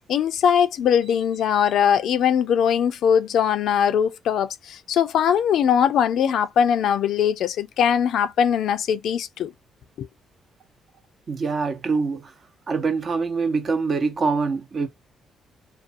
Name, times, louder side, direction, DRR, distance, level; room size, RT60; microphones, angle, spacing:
voice 1, 0.1-9.5 10.0-10.1, left 8 dB, 75° left, 0.4 m, -21 dB
voice 2, 11.3-12.3 12.7-14.9, right 4 dB, 45° right, 0.7 m, -24 dB
2.3 x 2.3 x 2.5 m
cardioid pair, 90°, 0 cm